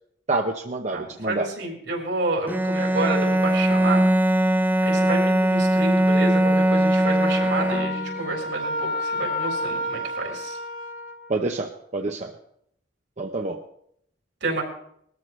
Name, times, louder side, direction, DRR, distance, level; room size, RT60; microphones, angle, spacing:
voice 1, 0.3-1.5 11.3-12.3 13.2-13.6, right 2 dB, 40° right, 3 dB, 0.8 m, -27 dB
voice 2, 0.9-4.1 4.8-10.6 14.4-14.6, right 2 dB, 75° right, 0 dB, 4.1 m, -29 dB
Bowed string instrument, 2.5-8.3, right 1 dB, 10° right, 0.6 m, -20 dB
Wind instrument woodwind instrument, 7.2-11.3, left 1 dB, 50° left, 1.0 m, -30 dB
20.0 x 13.5 x 3.3 m, 0.71 s
head